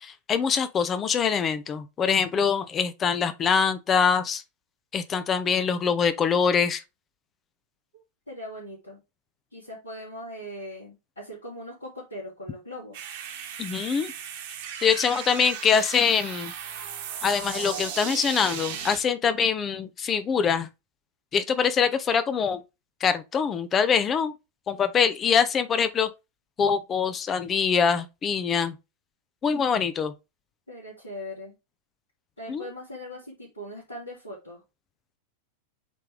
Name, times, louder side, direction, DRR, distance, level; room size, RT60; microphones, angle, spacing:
voice 1, 0.0-4.4 4.9-6.8 13.6-14.1 14.8-16.5 17.2-20.7 21.3-22.6 23.0-24.3 24.7-26.1 26.6-28.7 29.4-30.1 32.5-32.7, left 6 dB, 25° left, 0.7 m, -24 dB
voice 2, 8.3-9.0 9.5-13.0 29.6-29.8 30.7-31.5 32.4-34.6, equal, 75° left, 3.1 m, -40 dB
sound 1, 12.9-19.0, right 8 dB, 50° right, 1.5 m, -36 dB
8.3 x 3.4 x 3.5 m
figure-of-eight pair, 90°, 0 cm